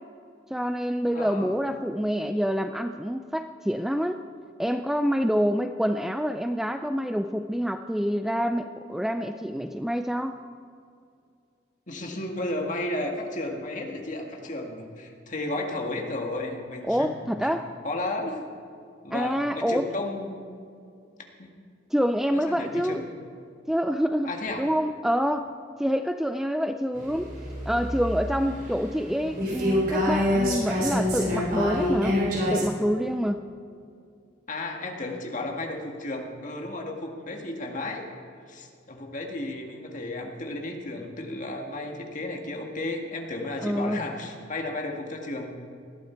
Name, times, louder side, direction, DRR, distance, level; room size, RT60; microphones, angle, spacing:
voice 1, 0.5-4.2 4.6-10.3 16.8-17.7 19.1-19.9 21.9-23.0 23.7-25.5 25.8-27.3 27.7-32.2 32.5-33.4 43.6-44.0, equal, ahead, 8 dB, 0.3 m, -27 dB
voice 2, 1.1-1.6 11.9-17.3 17.8-18.5 19.0-20.4 21.4-21.5 22.3-23.0 24.2-24.7 34.5-38.0 38.5-45.6, left 2 dB, 40° left, 1 dB, 1.9 m, -33 dB
sound 1, 26.9-32.6, left 1 dB, 50° right, 4.3 m, -27 dB
19.5 x 13.0 x 4.6 m, 2.4 s
head